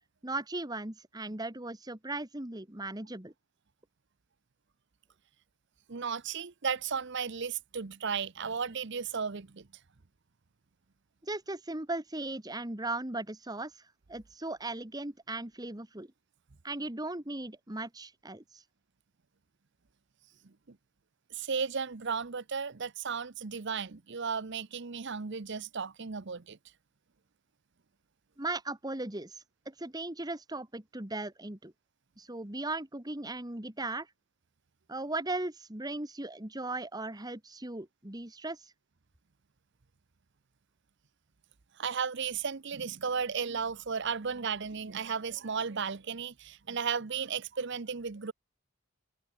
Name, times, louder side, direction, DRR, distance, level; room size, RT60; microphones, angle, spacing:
voice 1, 0.2-3.3 11.2-13.8 14.1-16.1 16.6-18.6 28.4-31.7 32.2-34.1 34.9-38.7, right 2 dB, 20° right, 1.6 m, -37 dB
voice 2, 5.9-9.6 21.3-26.6 41.8-48.3, right 6 dB, 55° right, 0.8 m, -34 dB
head